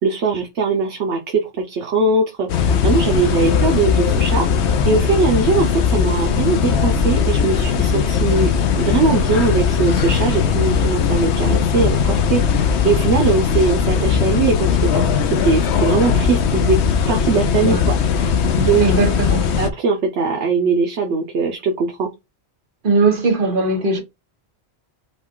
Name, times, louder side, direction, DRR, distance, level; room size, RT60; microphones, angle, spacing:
voice 1, 0.0-8.5 8.8-16.8 17.1-18.9 19.6-22.1, right 4 dB, 80° right, 1.1 m, -20 dB
sound 1, 2.5-19.7, left 6 dB, 80° left, 0.9 m, -18 dB
voice 2, 18.8-19.5 22.8-24.0, right 3 dB, 50° right, 1.4 m, -19 dB
5.4 x 2.4 x 3.7 m
omnidirectional pair, 1.1 m